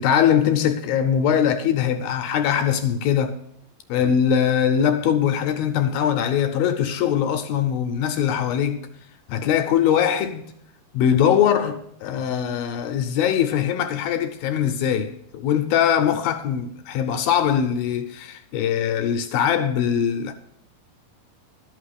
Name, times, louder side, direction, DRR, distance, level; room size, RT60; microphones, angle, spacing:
voice 1, 0.0-3.4 3.9-8.8 9.3-10.5 10.9-20.3, left 8 dB, 80° left, 2.3 m, -21 dB
12.0 x 5.8 x 6.4 m
omnidirectional pair, 4.7 m